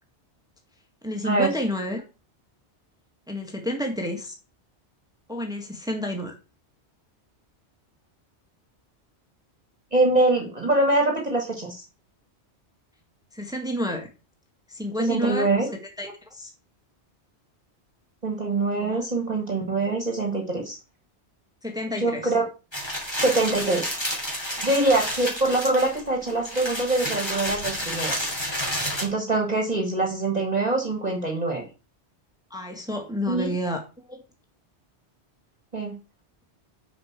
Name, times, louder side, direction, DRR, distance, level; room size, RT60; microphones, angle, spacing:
voice 1, 1.0-2.0 3.3-4.4 5.3-6.3 13.3-14.1 14.7-16.5 18.8-19.1 21.6-22.3 32.5-34.2, equal, 5° right, 3 dB, 1.6 m, -30 dB
voice 2, 9.9-11.8 15.0-15.7 18.2-20.8 22.0-22.4 23.2-24.0 24.6-28.3 29.0-31.7 33.3-33.5 35.7-36.0, right 2 dB, 35° right, 1 dB, 1.8 m, -24 dB
sound 1, 22.7-29.1, equal, 25° left, 3.4 m, -30 dB
6.7 x 5.5 x 7.3 m, 0.32 s
omnidirectional pair, 1.1 m